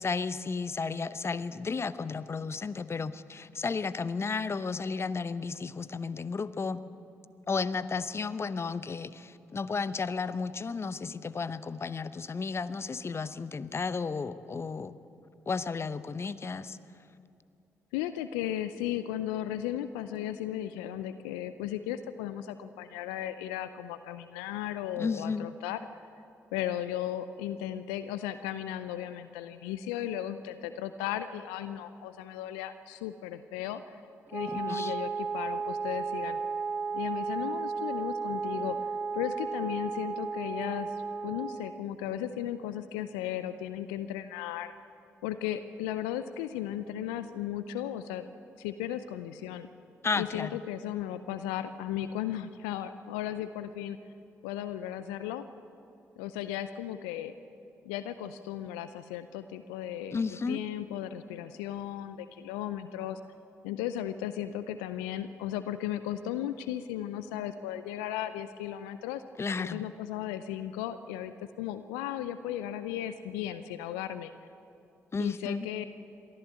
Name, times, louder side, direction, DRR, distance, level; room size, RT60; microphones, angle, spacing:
voice 1, 0.0-6.8 7.5-15.0 15.5-16.8 25.0-25.5 34.5-34.9 50.0-50.5 60.1-60.6 69.4-69.8 75.1-75.7, left 4 dB, 35° left, 15 dB, 0.8 m, -33 dB
voice 2, 17.9-25.8 26.5-34.0 34.3-36.4 36.9-40.9 41.2-44.7 45.2-48.3 48.6-49.7 50.1-54.0 54.4-55.4 56.2-57.3 57.9-63.2 63.6-69.2 69.6-74.3 75.2-75.9, left 11 dB, 80° left, 12 dB, 0.6 m, -36 dB
Wind instrument woodwind instrument, 34.3-41.7, right 5 dB, 30° right, 2.0 m, -34 dB
22.5 x 15.0 x 8.3 m, 2.7 s
hypercardioid pair, 40°, 8 cm